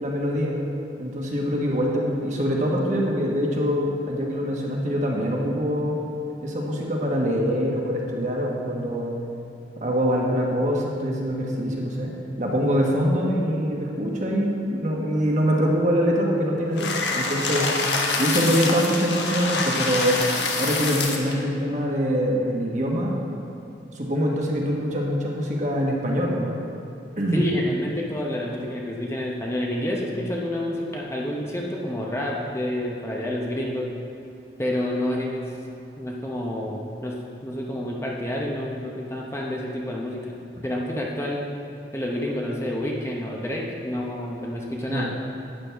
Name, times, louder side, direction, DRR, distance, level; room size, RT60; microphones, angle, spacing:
voice 1, 0.0-0.6 1.0-6.0 6.4-9.1 9.8-12.1 12.4-17.7 18.2-20.2 20.6-23.1 23.9-26.6 27.2-27.4 44.9-45.0, equal, 40° right, -2 dB, 1.4 m, -24 dB
sound 1, 16.8-21.3, left 3 dB, 80° left, 1.1 m, -26 dB
voice 2, 27.3-33.9 34.6-35.5 36.0-40.3 40.6-41.5 41.9-45.1, left 1 dB, 15° left, -2 dB, 0.8 m, -29 dB
11.5 x 8.9 x 3.4 m, 2.7 s
head